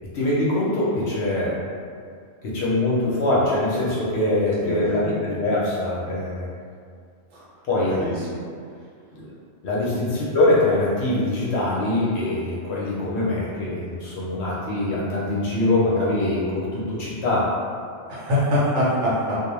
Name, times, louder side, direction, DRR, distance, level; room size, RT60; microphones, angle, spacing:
voice 1, 0.1-1.6 2.4-6.5 7.7-8.0 9.1-9.3 9.6-17.5, left 2 dB, 65° left, -7 dB, 0.8 m, -23 dB
voice 2, 4.6-5.0 7.3-7.4 7.8-8.4 18.1-19.4, left 1 dB, 65° right, -8 dB, 1.1 m, -24 dB
2.3 x 2.1 x 2.9 m, 2.2 s
omnidirectional pair, 1.4 m